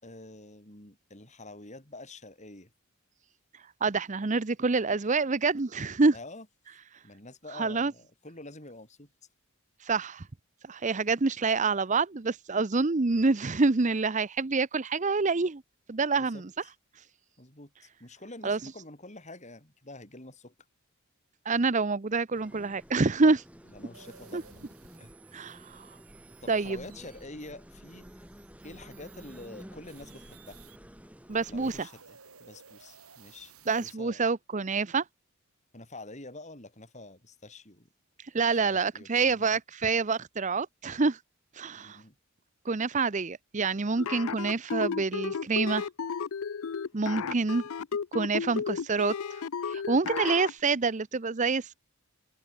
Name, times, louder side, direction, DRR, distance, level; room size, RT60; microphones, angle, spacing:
voice 1, 0.0-2.7 6.1-6.5 7.0-9.1 16.2-16.7 17.4-20.5 23.7-24.5 25.0-25.1 26.4-28.1 28.6-30.6 31.4-34.2 35.7-37.9 38.5-39.6 41.8-42.2 47.0-47.3 50.1-50.4, left 2 dB, 30° left, 5.1 m, -47 dB
voice 2, 3.8-6.2 7.5-7.9 9.8-10.3 10.7-15.6 15.9-16.5 18.4-18.6 21.5-23.4 24.3-24.4 25.3-25.9 26.5-26.8 31.3-31.9 33.7-35.0 38.3-41.2 41.6-42.0 42.7-45.9 46.9-47.6 48.1-49.1 49.7-51.7, right 4 dB, 35° right, 0.6 m, -27 dB
sound 1, 22.3-31.8, equal, 5° right, 5.7 m, -51 dB
sound 2, 23.9-30.8 31.2-33.9, right 7 dB, 75° right, 4.1 m, -56 dB
sound 3, 44.0-50.5, left 6 dB, 70° left, 0.5 m, -33 dB
open air
head